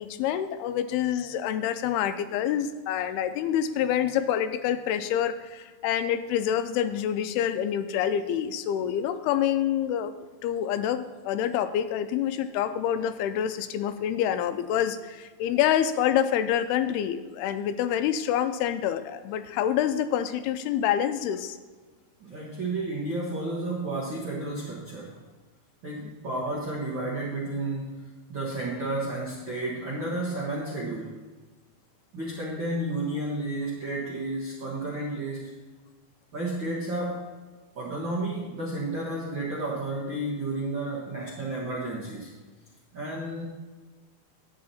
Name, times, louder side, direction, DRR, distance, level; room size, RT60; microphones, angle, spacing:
voice 1, 0.0-10.1 10.4-21.6 26.0-26.1, left 10 dB, 90° left, 10 dB, 2.6 m, -27 dB
voice 2, 22.2-25.2 25.8-31.1 32.1-35.5 36.3-37.3 37.7-42.3 42.9-43.4, right 2 dB, 65° right, -4 dB, 1.1 m, -32 dB
10.5 x 8.6 x 4.3 m, 1.4 s
omnidirectional pair, 4.5 m